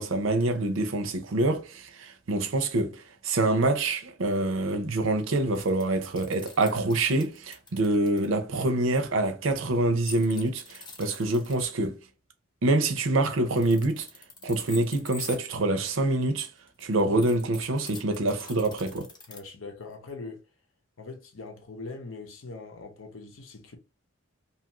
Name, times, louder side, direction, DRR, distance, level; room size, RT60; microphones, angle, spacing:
voice 1, 0.0-12.0 12.6-14.1 14.4-16.5 16.8-19.1, right 2 dB, 75° right, 0.6 m, -26 dB
sound 1, 5.3-8.3 10.0-11.7 13.4-15.4 16.3-19.4, left 3 dB, 20° left, 0.6 m, -44 dB
voice 2, 19.3-20.4 21.0-23.8, left 3 dB, 80° left, 0.8 m, -42 dB
2.8 x 2.4 x 2.9 m
head